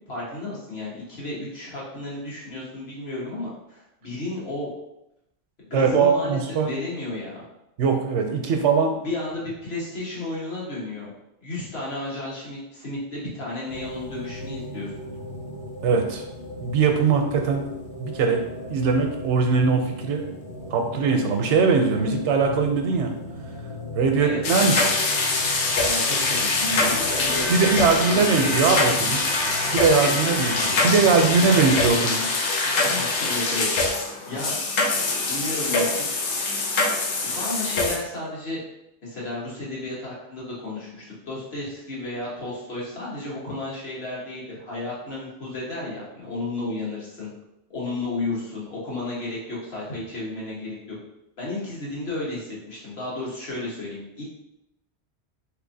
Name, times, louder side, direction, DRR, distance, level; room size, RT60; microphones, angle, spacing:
voice 1, 0.0-4.7 5.6-7.4 9.0-11.1 11.4-14.9 24.2-24.4 25.8-27.5 28.1-28.6 30.2-30.5 31.4-32.0 32.8-34.6 35.2-36.2 37.2-38.6 39.0-47.3 47.7-50.8 51.4-54.2, left 2 dB, 60° left, -6 dB, 1.4 m, -33 dB
voice 2, 5.7-6.7 7.8-9.0 15.8-16.2 16.6-17.7 18.0-18.4 18.7-20.2 20.7-23.1 23.9-24.9 27.5-29.2 29.7-32.2, right 5 dB, 85° right, 4 dB, 0.9 m, -21 dB
sound 1, 13.7-31.9, left 1 dB, 40° left, 0.4 m, -36 dB
sound 2, 24.4-38.0, left 3 dB, 90° left, 0.9 m, -24 dB
3.3 x 3.0 x 2.6 m, 0.86 s
omnidirectional pair, 1.2 m